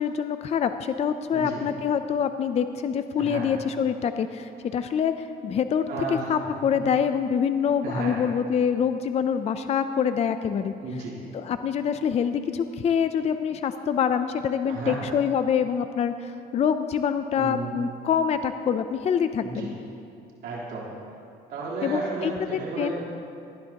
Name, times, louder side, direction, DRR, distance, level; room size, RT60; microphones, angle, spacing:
voice 1, 0.0-10.8 11.3-19.7 21.8-23.0, left 7 dB, 40° left, 10 dB, 0.5 m, -26 dB
voice 2, 1.3-1.7 3.2-3.5 5.9-6.6 7.8-8.2 10.8-11.2 14.7-15.0 17.3-17.8 19.4-19.7 20.4-20.9 21.5-23.0, right 3 dB, 70° right, -6 dB, 3.6 m, -33 dB
19.0 x 14.0 x 2.9 m, 2.6 s
cardioid pair, 110°, 17 cm